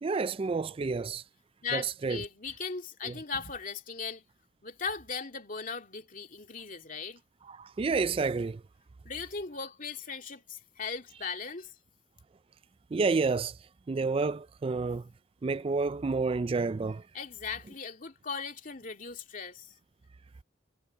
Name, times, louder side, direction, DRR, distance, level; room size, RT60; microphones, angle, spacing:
voice 1, 0.0-1.2 1.7-2.2 3.0-3.2 7.5-8.6 12.9-13.6 13.9-15.1 15.4-17.0, right 4 dB, 30° right, 0.3 m, -29 dB
voice 2, 1.6-4.2 4.6-7.2 9.0-11.7 17.1-19.7, left 5 dB, 45° left, 2.5 m, -38 dB
head